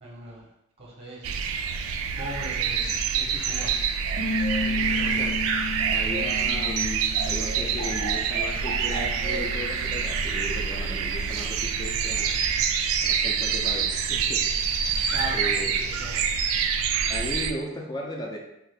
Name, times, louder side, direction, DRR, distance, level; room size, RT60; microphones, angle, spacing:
voice 1, 0.0-0.5 0.8-1.3 1.9-3.8 4.6-5.3 15.1-16.3, right 1 dB, 30° right, -4 dB, 0.7 m, -39 dB
sound 1, 1.2-17.5, right 6 dB, 80° right, 0.3 m, -26 dB
Bass guitar, 4.2-10.4, left 2 dB, 65° left, 0.8 m, -34 dB
voice 2, 4.8-5.3 5.9-12.3 13.0-14.4 14.7-15.0 15.3-15.7 17.1-18.4, left 1 dB, 20° left, 0 dB, 0.4 m, -36 dB
2.7 x 2.4 x 3.3 m, 0.83 s
head